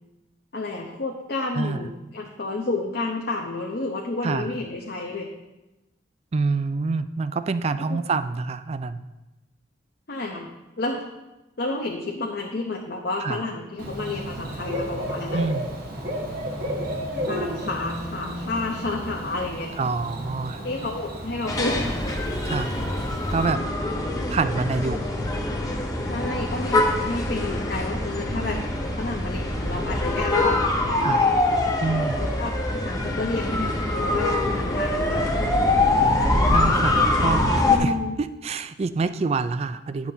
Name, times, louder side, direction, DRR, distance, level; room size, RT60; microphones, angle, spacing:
voice 1, 0.5-5.3 7.8-8.1 10.1-10.5 10.8-11.0 11.6-15.4 17.3-19.7 20.6-22.0 23.5-23.7 26.1-28.6 29.0-31.3 32.2-35.3 37.7-38.1, left 2 dB, 55° left, 0 dB, 0.7 m, -30 dB
voice 2, 6.3-9.0 13.2-13.4 15.3-15.7 19.8-20.6 22.5-22.8 23.3-23.6 24.3-25.0 31.0-31.3 31.8-32.2 36.5-40.1, right 4 dB, 35° right, 12 dB, 0.3 m, -26 dB
Bird / Cricket, 13.8-23.5, equal, 50° right, 1.3 m, -33 dB
sound 1, 21.5-37.8, left 2 dB, 20° left, 0.9 m, -24 dB
10.5 x 7.1 x 2.8 m, 1.0 s
head